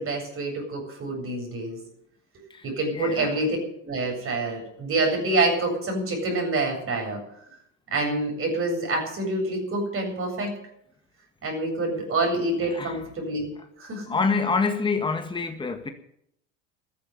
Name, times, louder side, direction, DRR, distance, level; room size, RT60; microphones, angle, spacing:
voice 1, 0.0-1.8 2.6-7.2 7.9-10.6 11.4-13.5 13.8-14.2, right 2 dB, 35° right, 7.8 m, -27 dB
voice 2, 2.9-3.3 12.7-13.0 14.1-15.9, left 4 dB, 15° left, 1.8 m, -26 dB
14.0 x 9.7 x 9.6 m
hypercardioid pair, 80°, 37 cm